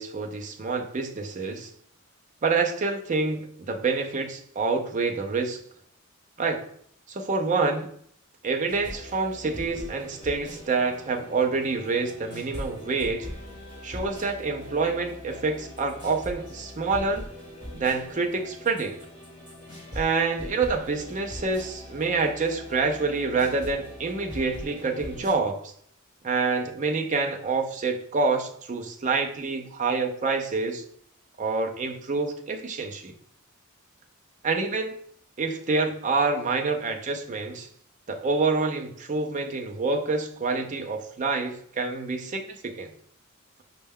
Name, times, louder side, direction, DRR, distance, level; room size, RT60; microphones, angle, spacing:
voice 1, 0.0-1.7 2.4-5.6 6.4-6.6 7.1-7.9 8.4-13.3 13.8-17.3 17.7-19.0 19.9-25.7 26.2-30.8 31.4-33.1 34.4-35.0 35.4-37.7 38.1-42.9, right 4 dB, 35° right, 4 dB, 0.5 m, -27 dB
sound 1, 8.7-25.3, left 1 dB, 20° right, 1.5 m, -41 dB
5.4 x 2.2 x 3.5 m, 0.64 s
head